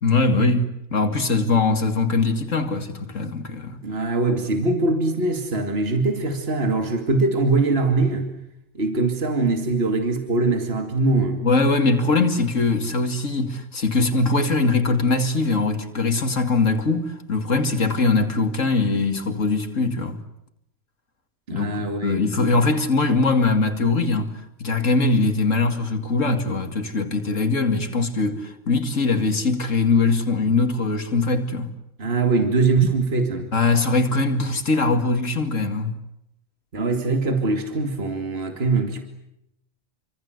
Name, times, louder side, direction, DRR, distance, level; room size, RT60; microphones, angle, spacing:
voice 1, 0.0-3.8 11.4-20.2 21.5-31.7 33.5-35.9, left 3 dB, 80° left, 2.6 m, -21 dB
voice 2, 3.8-8.3 8.7-11.4 21.5-22.2 32.0-33.5 36.7-39.0, right 3 dB, 50° right, 2.8 m, -22 dB
28.5 x 25.5 x 8.0 m
omnidirectional pair, 1.3 m